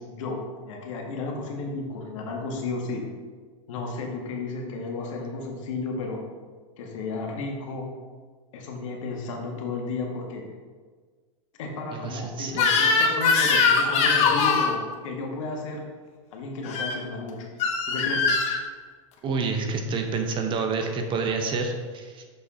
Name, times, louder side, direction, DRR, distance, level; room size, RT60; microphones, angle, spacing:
voice 1, 0.1-3.0 3.7-6.2 6.8-7.9 8.5-10.4 11.6-15.8 16.3-17.5 17.9-18.3, left 3 dB, 70° left, 1 dB, 1.6 m, -33 dB
voice 2, 11.9-12.7 19.2-22.3, right 4 dB, 30° right, 4 dB, 0.9 m, -28 dB
Crying sobbing / Screech, 12.5-14.7 16.6-17.0 17.6-18.6, left 4 dB, 40° left, 1.1 m, -21 dB
6.6 x 5.4 x 4.3 m, 1.5 s
hypercardioid pair, 125°, 17 cm